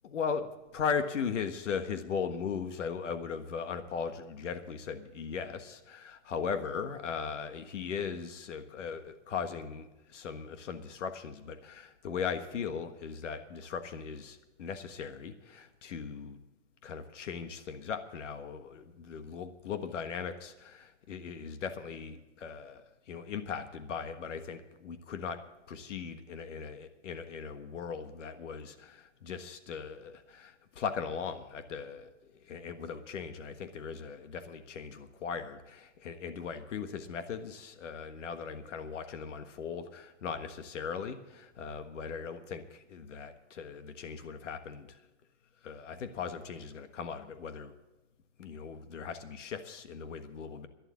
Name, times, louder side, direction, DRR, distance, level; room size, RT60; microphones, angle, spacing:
voice 1, 0.0-16.4 16.8-45.0 45.6-47.7 48.4-50.7, left 6 dB, 85° left, 9 dB, 1.5 m, -38 dB
11.5 x 11.5 x 7.4 m, 1.0 s
hypercardioid pair, 165°, 36 cm